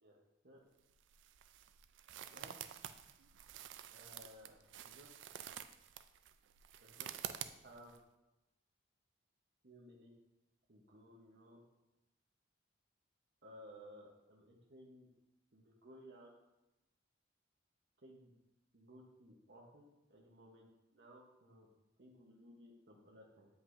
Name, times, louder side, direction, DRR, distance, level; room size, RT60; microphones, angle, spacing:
sound 1, 0.8-8.0, right 10 dB, 75° right, 0.3 m, -49 dB
voice 1, 2.3-2.6 3.9-5.1 6.8-7.1 7.6-7.9 9.6-10.1 10.7-11.6 13.4-15.1 15.5-16.3 18.0-18.3 18.7-19.8 20.1-20.7 20.9-21.7 22.0-23.5, equal, 60° right, -2 dB, 0.9 m, -58 dB
8.0 x 5.2 x 2.5 m, 0.96 s
head